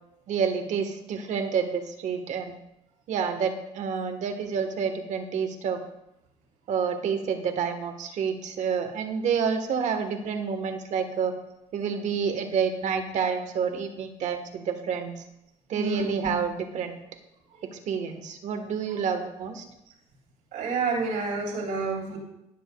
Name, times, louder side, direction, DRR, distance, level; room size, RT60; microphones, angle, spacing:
voice 1, 0.3-2.6 3.1-5.8 6.7-11.3 11.7-15.2 15.7-17.0 17.7-19.6, right 6 dB, 65° right, 6 dB, 1.3 m, -29 dB
voice 2, 15.7-16.3 17.6-17.7 20.5-22.2, right 3 dB, 85° right, -2 dB, 3.3 m, -29 dB
17.5 x 7.1 x 2.3 m, 0.87 s
cardioid pair, 105°, 13 cm